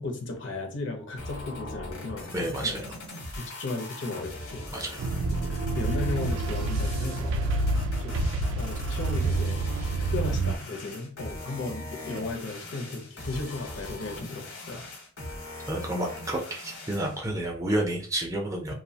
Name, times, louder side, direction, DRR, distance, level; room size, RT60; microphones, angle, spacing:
voice 1, 0.0-2.3 2.6-2.9 3.3-4.6 5.5-7.5 8.0-9.6 10.1-14.9, left 3 dB, 60° left, 4 dB, 0.5 m, -35 dB
sound 1, 1.2-17.2, left 1 dB, 80° left, 0.9 m, -40 dB
voice 2, 2.3-2.9 4.7-5.1 15.7-18.7, right 1 dB, 15° right, 0 dB, 0.4 m, -30 dB
sound 2, 5.0-10.6, right 2 dB, 85° right, 0.3 m, -28 dB
2.6 x 2.1 x 2.7 m, 0.42 s
head